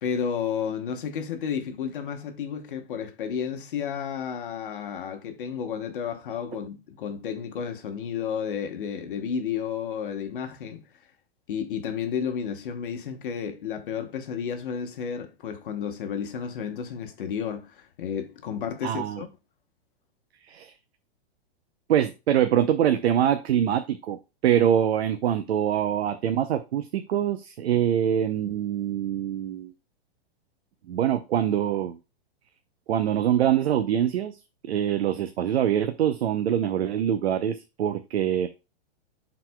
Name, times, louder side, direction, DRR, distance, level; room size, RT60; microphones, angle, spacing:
voice 1, 0.0-10.9 11.5-19.3, left 7 dB, 55° left, 1.1 m, -32 dB
voice 2, 18.8-19.2 20.5-20.7 21.9-29.7 30.9-32.0 32.9-34.4 34.7-38.5, right 10 dB, 80° right, 0.7 m, -24 dB
12.0 x 4.1 x 2.2 m
supercardioid pair, 175°, 31 cm